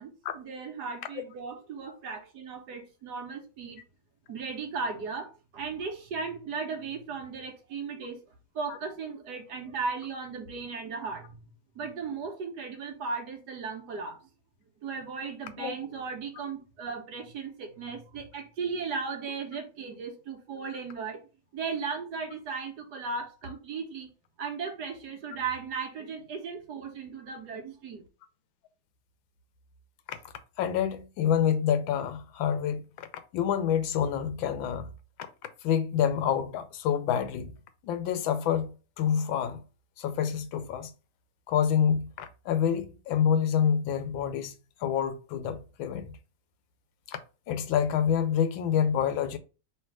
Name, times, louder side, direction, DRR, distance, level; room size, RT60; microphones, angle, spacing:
voice 1, 0.0-3.8 4.3-8.2 8.5-11.5 11.8-14.2 14.8-21.2 21.5-24.1 24.4-28.0, right 5 dB, 60° right, 1.3 m, -36 dB
voice 2, 30.6-33.1 33.3-34.9 35.6-37.5 37.8-39.6 40.0-40.9 41.5-44.5 44.8-46.1 47.1-47.2 47.5-49.4, left 8 dB, 85° left, 1.4 m, -27 dB
3.3 x 3.2 x 4.5 m
omnidirectional pair, 2.1 m